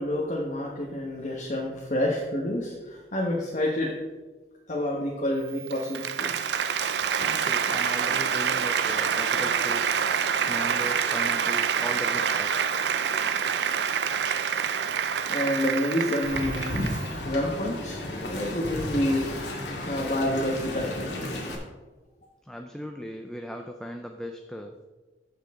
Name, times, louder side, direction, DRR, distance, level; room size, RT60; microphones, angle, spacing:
voice 1, 0.0-3.9 4.7-6.5 14.9-19.3 19.6-21.1, left 1 dB, 45° left, -3 dB, 1.3 m, -29 dB
Applause, 5.5-17.1, right 7 dB, 70° right, 0.5 m, -27 dB
voice 2, 7.2-10.0 10.5-12.5 22.4-24.7, equal, 5° left, 4 dB, 0.5 m, -38 dB
Wind, 16.2-21.5, left 1 dB, 80° left, 2.1 m, -33 dB
14.0 x 6.6 x 3.7 m, 1.2 s
head